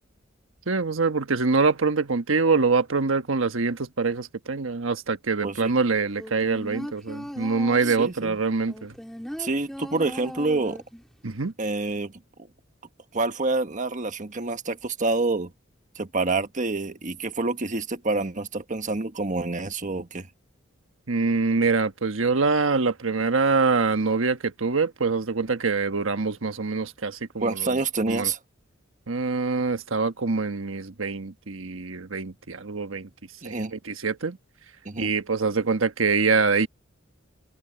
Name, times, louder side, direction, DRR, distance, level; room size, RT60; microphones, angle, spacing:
voice 1, 0.7-8.9 11.2-11.5 21.1-27.8 28.1-28.3 29.1-33.1 33.4-34.4 35.0-36.7, right 4 dB, 75° right, 1.3 m, -24 dB
voice 2, 5.4-5.7 7.8-8.4 9.4-10.8 11.6-12.1 13.1-15.5 15.9-20.3 27.4-28.4 33.4-33.7 34.8-35.1, right 3 dB, 40° right, 1.4 m, -27 dB
sound 1, 6.2-8.1 8.7-11.1 11.4-11.5, equal, ahead, 3.2 m, -37 dB
head